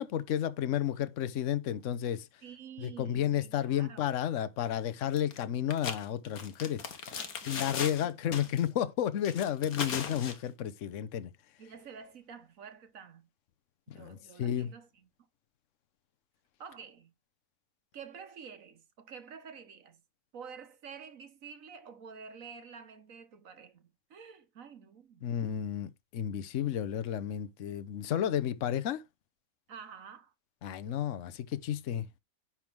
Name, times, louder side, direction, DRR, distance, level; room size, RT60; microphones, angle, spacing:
voice 1, 0.0-2.3 2.8-6.8 7.5-11.3 13.9-14.7 25.2-29.0 30.6-32.1, left 10 dB, 60° left, 1.1 m, -32 dB
voice 2, 2.4-4.1 7.1-8.5 11.6-13.3 13.9-15.1 16.6-17.1 17.9-20.0 20.3-25.3 29.7-30.3, right 6 dB, 65° right, 1.5 m, -49 dB
sound 1, 5.2-5.4 5.7-8.1 8.3-8.7 9.2-10.4, left 6 dB, 80° left, 1.7 m, -38 dB
10.5 x 3.6 x 6.1 m
omnidirectional pair, 1.5 m